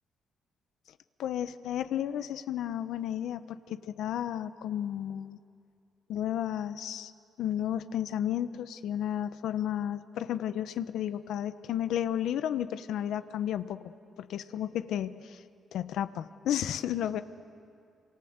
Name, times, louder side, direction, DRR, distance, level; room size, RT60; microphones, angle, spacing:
voice 1, 1.2-5.4 6.1-7.1 7.4-13.8 14.2-15.4 15.7-17.2, left 10 dB, 80° left, 12 dB, 1.0 m, -32 dB
27.5 x 25.5 x 8.1 m, 2.5 s
cardioid pair, 90°, 0 cm